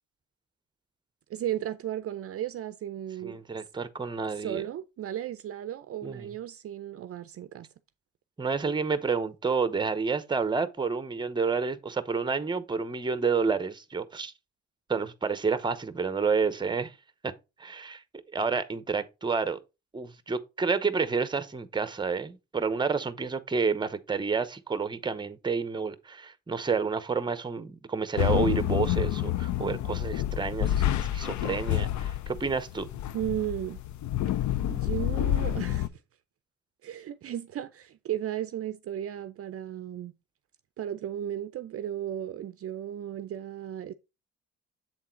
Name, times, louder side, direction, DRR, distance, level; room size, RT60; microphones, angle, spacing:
voice 1, 1.3-3.4 4.3-7.7 33.1-33.8 34.7-35.9 36.8-40.1 40.8-43.9, right 11 dB, 50° right, 0.5 m, -35 dB
voice 2, 3.2-4.6 6.0-6.3 8.4-14.3 14.9-16.9 17.2-17.3 17.6-18.0 18.3-19.6 19.9-32.9, right 5 dB, 15° right, 0.7 m, -29 dB
sound 1, 28.2-35.9, left 12 dB, 70° left, 0.5 m, -28 dB
7.6 x 3.7 x 4.3 m
cardioid pair, 90°, 30 cm